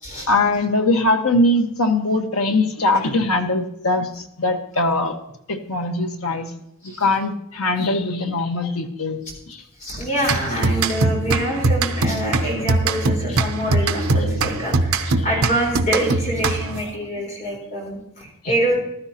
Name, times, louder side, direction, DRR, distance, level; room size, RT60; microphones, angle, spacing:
voice 1, 0.3-5.1 5.5-6.5 6.8-9.2 9.5-9.6, left 2 dB, 80° left, 5 dB, 1.3 m, -21 dB
voice 2, 9.8-18.8, right 1 dB, 35° left, -2 dB, 4.1 m, -25 dB
sound 1, 10.2-16.9, right 3 dB, 80° right, 0.8 m, -22 dB
14.5 x 12.5 x 2.9 m, 0.80 s
head